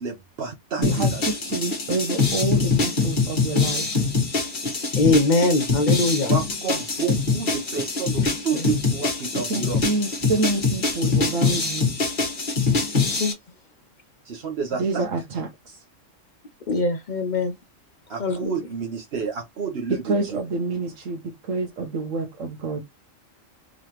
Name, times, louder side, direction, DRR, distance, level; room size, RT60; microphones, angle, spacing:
voice 1, 0.0-1.6 6.3-9.8 14.2-15.0 18.1-20.4, right 6 dB, 55° right, 1.0 m, -30 dB
sound 1, 0.8-13.3, left 4 dB, 40° left, 1.4 m, -24 dB
voice 2, 0.8-3.9 9.3-11.9 14.8-15.8 19.9-22.8, right 3 dB, 75° right, 1.2 m, -27 dB
voice 3, 5.0-6.3 8.5-8.6 13.2-13.3 16.7-17.5 18.2-18.6, left 2 dB, 55° left, 0.5 m, -22 dB
3.7 x 3.2 x 2.9 m
omnidirectional pair, 1.3 m